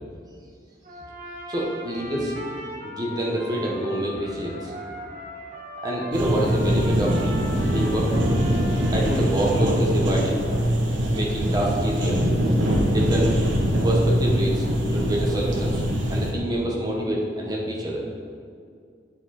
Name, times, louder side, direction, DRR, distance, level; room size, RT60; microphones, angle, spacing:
Trumpet, 0.8-9.2, equal, 45° right, 1.5 m, -39 dB
voice 1, 1.5-2.4 2.8-4.7 5.8-7.1 7.7-8.1 8.9-10.4 11.1-12.2 12.9-13.3 13.8-14.6 14.9-15.8 16.1-18.0, right 1 dB, 20° right, -3 dB, 1.3 m, -26 dB
sound 1, 6.1-16.3, equal, 90° right, 1.2 m, -23 dB
9.8 x 4.7 x 4.3 m, 2.2 s
head